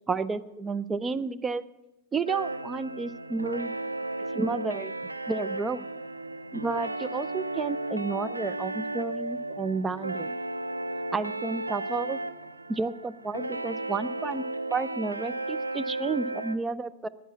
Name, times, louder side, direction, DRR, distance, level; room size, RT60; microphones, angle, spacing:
voice 1, 0.1-1.6 2.1-3.7 4.3-4.9 5.3-5.9 6.5-10.3 11.1-12.2 12.7-14.4 14.7-17.1, right 4 dB, 15° right, 12 dB, 0.5 m, -31 dB
sound 1, 2.3-16.5, right 2 dB, 85° right, 0.5 m, -34 dB
11.0 x 9.5 x 7.1 m, 0.93 s
figure-of-eight pair, 90°, 0 cm